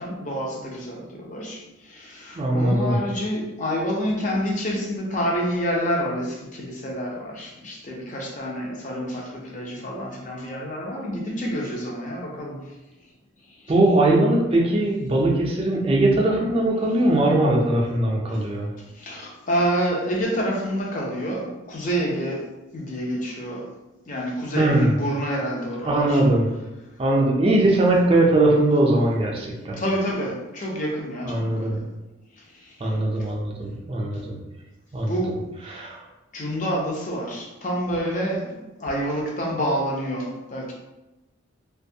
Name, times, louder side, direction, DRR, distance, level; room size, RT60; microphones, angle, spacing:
voice 1, 0.0-1.6 1.9-12.6 19.0-22.4 22.7-23.6 24.1-26.2 29.8-31.8 35.1-35.3 35.6-35.8 36.3-38.4 38.8-40.7, equal, 40° left, -1 dB, 0.5 m, -28 dB
voice 2, 2.3-3.0 13.7-18.7 24.5-24.9 25.9-26.5 27.0-29.8 31.2-31.8 32.8-34.4 34.9-35.1 35.7-36.0, right 1 dB, 30° right, -1 dB, 0.4 m, -20 dB
2.5 x 2.3 x 2.7 m, 1.0 s
head